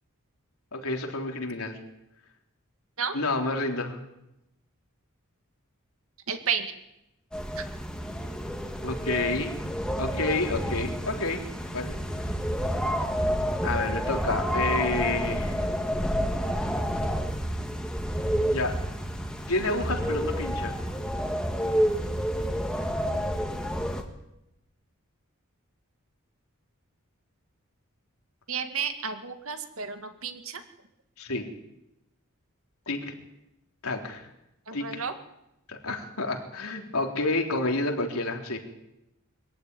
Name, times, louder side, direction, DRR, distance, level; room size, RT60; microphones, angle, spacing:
voice 1, 0.7-1.8 3.1-4.0 8.8-9.5 10.0-11.4 11.7-12.0 13.6-15.6 18.5-18.8 19.5-20.8 31.2-31.5 32.9-33.1 33.8-34.3 34.7-35.0 35.7-38.6, left 2 dB, 85° left, 3 dB, 3.6 m, -29 dB
voice 2, 6.3-6.7 7.6-7.7 28.5-30.6 34.7-35.1, right 6 dB, 75° right, 8 dB, 2.2 m, -32 dB
sound 1, 7.3-24.0, equal, 5° left, 1.8 m, -29 dB
22.5 x 14.5 x 9.8 m, 0.88 s
head